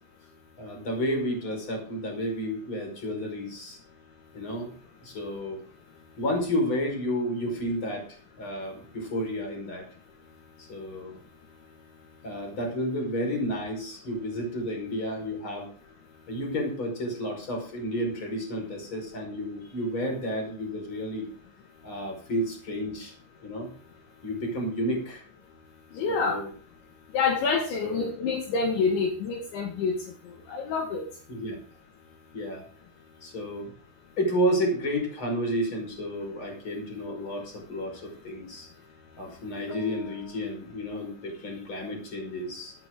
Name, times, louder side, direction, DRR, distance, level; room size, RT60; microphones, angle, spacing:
voice 1, 0.6-3.8 4.3-4.8 5.0-5.6 6.2-8.1 8.4-9.8 10.6-11.2 12.2-15.7 16.3-21.3 21.8-23.1 23.4-23.7 24.2-25.2 26.1-26.5 27.8-28.1 31.3-31.6 32.3-32.6 33.2-33.7 34.2-38.7 39.2-42.7, equal, 25° left, 3 dB, 5.7 m, -31 dB
voice 2, 26.0-26.4 27.1-29.9 30.5-31.0, left 5 dB, 65° left, 1 dB, 4.1 m, -27 dB
13.0 x 13.0 x 3.9 m, 0.42 s
omnidirectional pair, 5.8 m